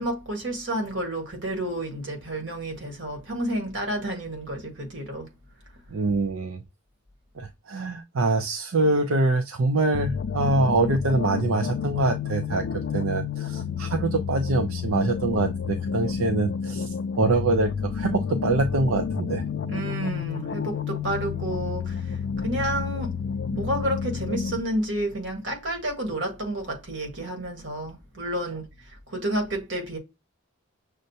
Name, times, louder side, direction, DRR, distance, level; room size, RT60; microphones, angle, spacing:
voice 1, 0.0-5.3 19.7-23.2 23.5-30.0, right 1 dB, 60° right, 1.6 m, -30 dB
voice 2, 5.9-6.6 7.4-12.6 12.9-16.9 17.2-19.4, right 2 dB, 90° right, 0.5 m, -24 dB
sound 1, 9.9-24.6, left 6 dB, 60° left, 0.3 m, -30 dB
6.3 x 2.1 x 2.7 m
head